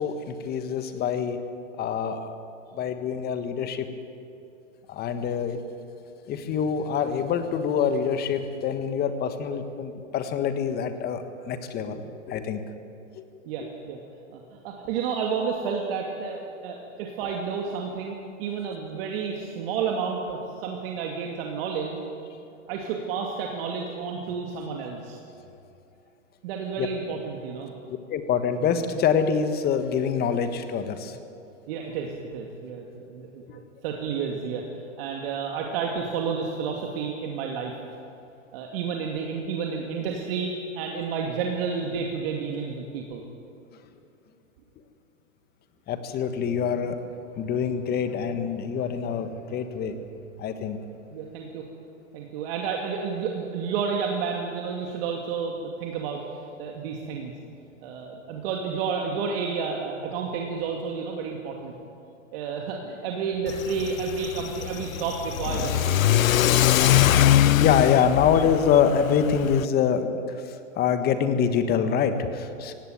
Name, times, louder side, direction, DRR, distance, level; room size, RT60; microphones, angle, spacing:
voice 1, 0.0-1.4 1.8-2.4 2.7-3.9 4.9-5.6 6.3-12.0 12.3-12.6 13.1-13.2 26.8-26.9 28.1-31.2 45.9-47.0 47.4-49.9 50.4-50.8 67.3-70.2 70.8-72.7, left 7 dB, 25° left, 9 dB, 1.5 m, -25 dB
voice 2, 13.5-14.0 14.3-22.0 22.7-25.2 26.4-27.7 31.0-31.1 31.7-34.6 35.0-37.7 38.5-43.2 51.1-51.6 52.1-56.2 56.6-57.3 57.8-61.7 62.3-66.2, right 5 dB, 45° right, 1 dB, 2.3 m, -31 dB
Car / Accelerating revving vroom, 63.5-69.6, left 11 dB, 85° left, 0.6 m, -22 dB
17.5 x 17.0 x 9.3 m, 2.7 s
hypercardioid pair, 130°, 40 cm